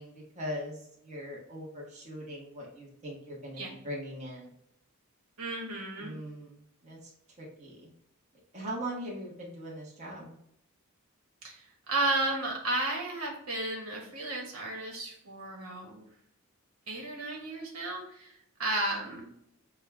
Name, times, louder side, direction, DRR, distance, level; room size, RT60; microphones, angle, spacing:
voice 1, 0.0-4.5 6.0-7.1 7.4-7.9 8.5-10.4, equal, 30° right, -3 dB, 1.2 m, -40 dB
voice 2, 5.4-6.2 11.4-16.1 16.9-18.3 18.6-19.2, right 2 dB, 85° right, -1 dB, 1.3 m, -33 dB
6.4 x 2.3 x 3.2 m, 0.75 s
head